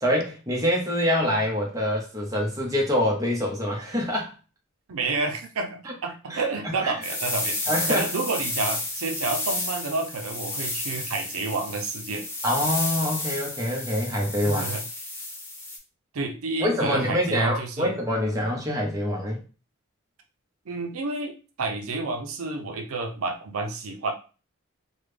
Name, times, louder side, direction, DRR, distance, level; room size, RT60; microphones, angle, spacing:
voice 1, 0.0-4.3 6.3-6.4 6.8-6.9 7.7-8.0 12.4-14.7 16.6-19.4, equal, 15° right, 0.8 m, -25 dB
voice 2, 4.9-12.3 14.4-14.8 16.1-17.9 20.7-21.3 21.6-24.1, right 3 dB, 85° right, 0.6 m, -30 dB
sound 1, 7.0-15.8, left 2 dB, 10° left, 0.7 m, -31 dB
3.5 x 2.2 x 3.2 m
head